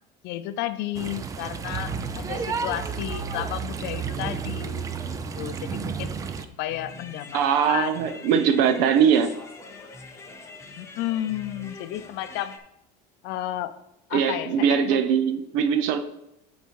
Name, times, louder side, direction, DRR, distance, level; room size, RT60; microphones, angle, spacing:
voice 1, 0.2-8.2 10.8-12.6 13.2-13.7 14.1-15.0, left 13 dB, 65° left, 12 dB, 0.6 m, -32 dB
sound 1, 0.9-6.4, right 6 dB, 15° right, 0.3 m, -31 dB
sound 2, 6.7-12.6, left 3 dB, 15° left, 0.8 m, -44 dB
voice 2, 7.3-9.3 14.1-16.0, right 7 dB, 70° right, 9 dB, 0.9 m, -21 dB
10.5 x 4.2 x 4.7 m, 0.84 s
cardioid pair, 175°, 19 cm